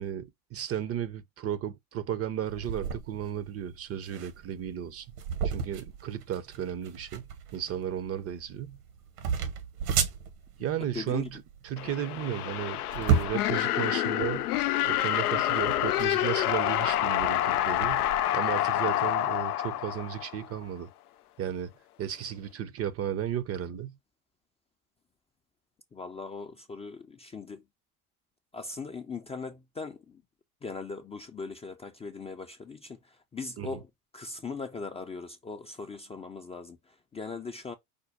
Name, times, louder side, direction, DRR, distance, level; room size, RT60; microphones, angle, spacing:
voice 1, 0.0-5.1 5.4-7.3 7.5-8.8 10.6-14.5 14.8-18.1 18.3-20.9 21.4-21.7 22.0-24.0 33.6-33.8, right 10 dB, 35° right, 0.6 m, -34 dB
sound 1, 2.5-18.2, right 6 dB, 75° right, 1.5 m, -34 dB
voice 2, 10.9-11.3 25.9-27.6 28.5-30.2 30.6-33.9 34.1-37.7, left 4 dB, 15° left, 0.4 m, -39 dB
sound 2, 11.8-20.6, left 13 dB, 85° left, 0.5 m, -28 dB
5.2 x 2.1 x 4.8 m
hypercardioid pair, 85°, 44 cm